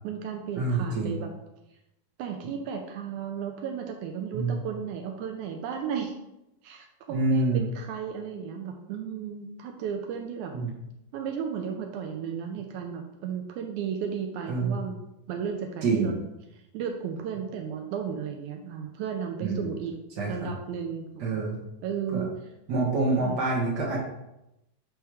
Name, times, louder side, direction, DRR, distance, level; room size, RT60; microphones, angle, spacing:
voice 1, 0.0-1.3 2.2-6.2 6.6-10.5 11.1-15.0 15.3-16.2 16.7-19.9 20.2-21.5 21.8-22.3 23.1-23.4, right 7 dB, 85° right, 3 dB, 1.8 m, -34 dB
voice 2, 0.5-1.1 4.3-4.6 7.1-7.7 10.5-10.7 14.5-14.8 15.8-16.1 19.4-19.7 20.2-20.5 21.2-21.6 22.1-22.2 22.7-24.0, right 3 dB, 60° right, -5 dB, 1.1 m, -26 dB
7.6 x 3.5 x 4.6 m, 0.89 s
omnidirectional pair, 4.1 m